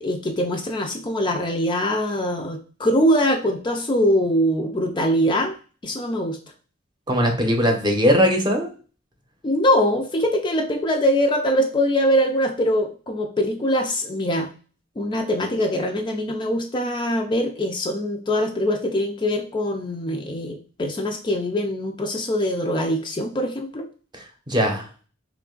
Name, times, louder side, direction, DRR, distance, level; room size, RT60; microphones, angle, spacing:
voice 1, 0.0-5.5 5.8-6.4 9.4-14.5 15.0-23.9, equal, 25° left, 3 dB, 0.4 m, -23 dB
voice 2, 7.1-8.7 24.5-24.8, equal, 25° right, 3 dB, 0.8 m, -19 dB
3.2 x 2.4 x 3.7 m, 0.38 s
head